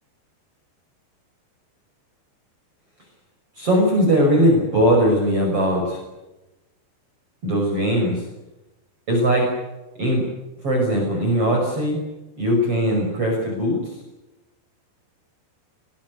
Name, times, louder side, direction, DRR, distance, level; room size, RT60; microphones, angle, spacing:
voice 1, 3.6-6.0 7.4-8.2 9.1-9.5 10.0-10.3 10.6-12.0 12.4-13.9, equal, 30° right, 0 dB, 6.7 m, -19 dB
25.0 x 21.0 x 9.7 m, 1.0 s
omnidirectional pair, 5.3 m